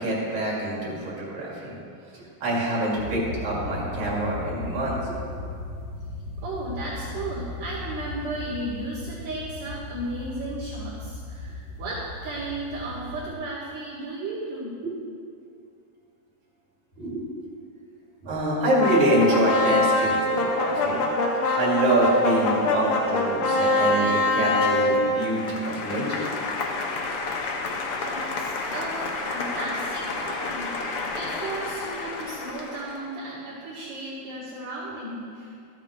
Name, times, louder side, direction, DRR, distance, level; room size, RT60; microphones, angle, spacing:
voice 1, 0.0-1.8 2.4-5.1 17.0-17.2 18.2-21.0 21.5-26.3, right 1 dB, 65° right, -5 dB, 3.5 m, -25 dB
sound 1, 3.0-13.3, left 2 dB, 85° left, 3.1 m, -37 dB
voice 2, 6.4-14.8 28.0-35.6, right 2 dB, 85° right, -13 dB, 4.1 m, -34 dB
sound 2, 18.8-33.0, left 2 dB, 65° left, 1.4 m, -26 dB
14.0 x 8.9 x 3.2 m, 2.4 s
omnidirectional pair, 3.6 m